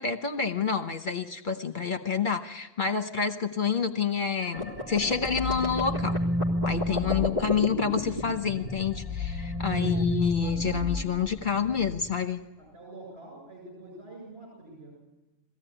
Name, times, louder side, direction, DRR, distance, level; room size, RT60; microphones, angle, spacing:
voice 1, 0.0-6.1 6.6-12.4, left 6 dB, 50° left, 7 dB, 1.2 m, -28 dB
sound 1, 4.4-8.3 8.7-12.1, left 1 dB, 55° right, 5.2 m, -31 dB
sound 2, 4.6-9.8, left 1 dB, 40° right, 3.6 m, -32 dB
voice 2, 7.1-7.5 9.7-10.0 12.6-14.9, right 2 dB, 80° right, -3 dB, 8.0 m, -46 dB
22.5 x 16.5 x 10.0 m, 1.1 s
omnidirectional pair, 1.1 m